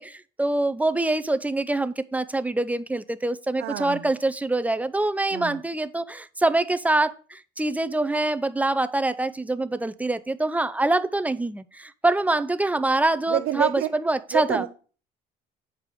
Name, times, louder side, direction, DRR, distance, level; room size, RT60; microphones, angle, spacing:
voice 1, 0.0-14.6, right 2 dB, 10° right, 0.5 m, -25 dB
voice 2, 3.6-4.1 5.3-5.6 13.3-13.9 14.3-14.7, right 13 dB, 80° right, 0.6 m, -27 dB
8.5 x 4.7 x 5.0 m
cardioid pair, 110°, 17 cm